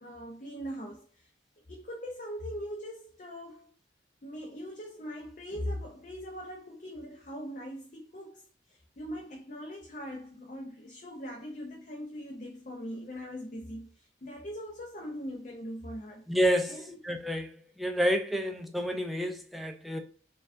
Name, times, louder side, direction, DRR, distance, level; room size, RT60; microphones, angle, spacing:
voice 1, 0.0-1.3 1.6-3.7 4.2-16.3 16.7-17.0 18.2-18.3, equal, 45° left, 0.6 m, -41 dB
voice 2, 16.3-17.5 17.8-20.0, equal, ahead, 0.4 m, -29 dB
4.4 x 2.4 x 2.5 m
head